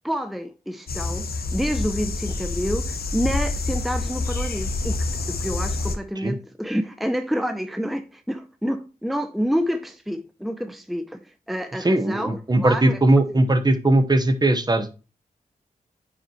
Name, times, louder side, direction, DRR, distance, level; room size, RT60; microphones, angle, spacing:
voice 1, 0.0-13.0 13.3-13.4, equal, ahead, 0.6 m, -28 dB
sound 1, 0.9-6.0, left 3 dB, 85° left, 1.1 m, -27 dB
voice 2, 11.8-14.9, right 2 dB, 25° right, 1.1 m, -19 dB
9.6 x 5.5 x 3.0 m
wide cardioid pair, 75°, 15 cm